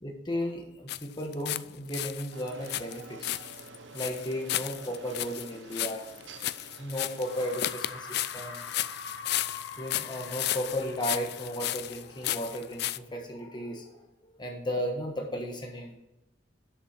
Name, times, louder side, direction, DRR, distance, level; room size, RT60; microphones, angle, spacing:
voice 1, 0.0-3.4 3.9-6.1 6.8-8.6 9.8-14.1 14.4-15.9, equal, 25° left, 1 dB, 1.4 m, -35 dB
sound 1, 0.9-1.6 1.9-13.0, left 14 dB, 60° left, 0.4 m, -34 dB
sound 2, 2.3-7.7, right 5 dB, 90° right, 0.8 m, -49 dB
sound 3, 6.4-6.5 7.2-12.4, left 4 dB, 85° left, 1.0 m, -44 dB
8.3 x 7.4 x 5.2 m, 0.91 s
head